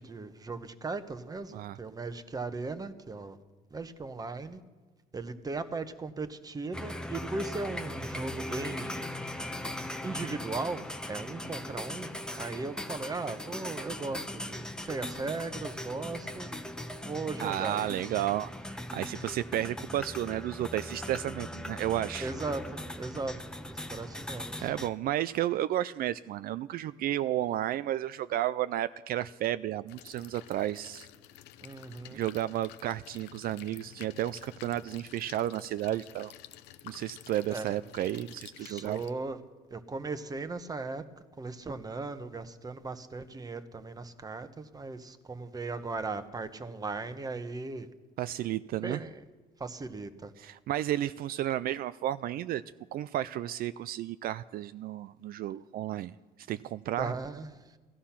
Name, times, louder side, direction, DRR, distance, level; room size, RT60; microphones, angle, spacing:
voice 1, 0.0-3.4 3.7-4.6 5.1-9.1 10.0-12.1 12.4-16.5 17.1-17.9 22.2-23.4 23.7-24.7 31.6-32.2 37.5-37.7 38.6-39.4 39.7-41.0 41.4-47.9 48.8-49.2 49.6-50.3 57.0-57.6, right 3 dB, 20° right, 10 dB, 1.0 m, -37 dB
sound 1, 6.7-24.9, left 1 dB, 5° left, 0.9 m, -39 dB
voice 2, 17.4-22.3 24.6-31.1 32.1-36.3 36.8-39.0 48.2-49.0 50.4-52.6 52.9-56.1 56.5-57.1, right 13 dB, 60° right, 14 dB, 0.4 m, -32 dB
sound 2, 29.9-39.1, left 12 dB, 85° left, 0.7 m, -51 dB
16.5 x 13.5 x 5.8 m, 1.3 s
cardioid pair, 110°, 17 cm